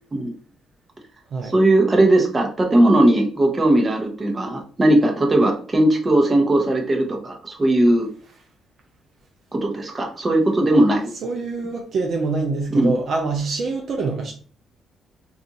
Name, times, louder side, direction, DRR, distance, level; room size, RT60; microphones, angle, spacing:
voice 1, 1.5-8.1 9.5-11.0 12.7-12.9, right 1 dB, 25° right, 0.9 m, -18 dB
voice 2, 11.2-14.3, right 3 dB, 60° right, 0.6 m, -25 dB
2.5 x 2.4 x 4.0 m
cardioid pair, 90°, 0 cm